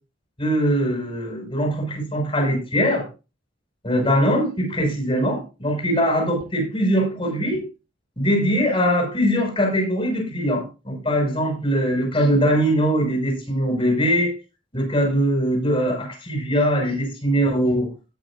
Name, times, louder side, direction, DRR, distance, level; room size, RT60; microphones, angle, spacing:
voice 1, 0.4-3.1 3.8-7.7 8.2-14.3 14.7-17.9, equal, 30° left, 5.5 m, -21 dB
17.5 x 7.2 x 2.5 m
head